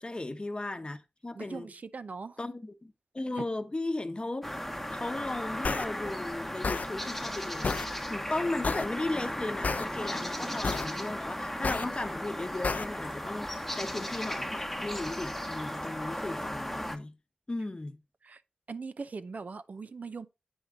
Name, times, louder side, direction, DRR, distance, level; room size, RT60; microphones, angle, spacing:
voice 1, 0.0-1.7 2.4-4.4 4.9-17.1 17.5-18.0, left 2 dB, 35° left, 0.9 m, -36 dB
voice 2, 1.4-2.4 18.2-18.4 18.7-20.3, right 4 dB, 65° right, 0.5 m, -40 dB
sound 1, 4.4-17.0, equal, 5° left, 1.0 m, -36 dB
sound 2, 5.6-5.8 6.6-6.9 7.6-7.9 8.6-8.9 9.6-9.8 10.6-10.9 11.6-11.8 12.6-12.8, left 4 dB, 65° left, 0.5 m, -30 dB
8.0 x 4.8 x 3.8 m
cardioid pair, 45°, 3 cm